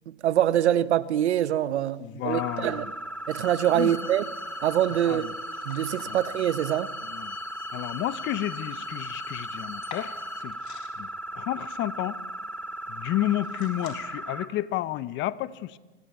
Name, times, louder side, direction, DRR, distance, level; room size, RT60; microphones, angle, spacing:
voice 1, 0.2-2.8 3.3-4.2 4.6-5.3 5.6-6.9, right 11 dB, 80° right, 1.2 m, -24 dB
sound 1, 0.8-13.9, left 8 dB, 70° left, 5.9 m, -53 dB
voice 2, 2.0-2.9 3.7-3.9 5.0-5.3 6.1-6.2 7.0-7.4 7.7-10.1 10.4-10.6 11.0-11.1 11.3-12.2 12.9-15.8, left 14 dB, 35° left, 1.0 m, -31 dB
sound 2, 2.3-14.4, right 1 dB, 5° left, 2.1 m, -37 dB
sound 3, 3.3-10.4, left 7 dB, 85° left, 3.9 m, -45 dB
25.0 x 17.5 x 8.3 m
hypercardioid pair, 125°, 33 cm